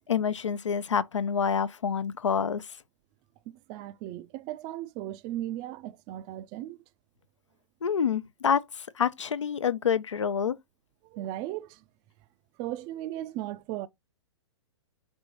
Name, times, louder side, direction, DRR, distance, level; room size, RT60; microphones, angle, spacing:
voice 1, 0.1-2.6 7.8-8.6 9.0-10.6, left 7 dB, 80° left, 0.4 m, -27 dB
voice 2, 3.5-6.8 11.0-11.8 12.6-13.9, right 14 dB, 30° right, 0.3 m, -37 dB
5.3 x 2.7 x 2.9 m
figure-of-eight pair, 115°, 15 cm